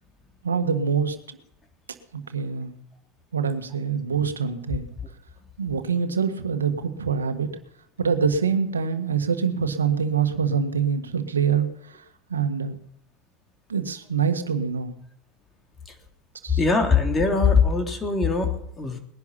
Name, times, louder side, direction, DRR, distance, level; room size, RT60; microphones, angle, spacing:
voice 1, 0.4-1.2 2.1-2.8 3.3-4.9 5.6-7.5 8.0-12.0 12.3-12.8 13.7-14.9 16.4-16.6, right 6 dB, 90° right, 8 dB, 1.5 m, -25 dB
voice 2, 16.6-19.0, left 5 dB, 25° left, 3 dB, 3.3 m, -21 dB
20.5 x 11.0 x 5.7 m, 0.75 s
hypercardioid pair, 85°, 0 cm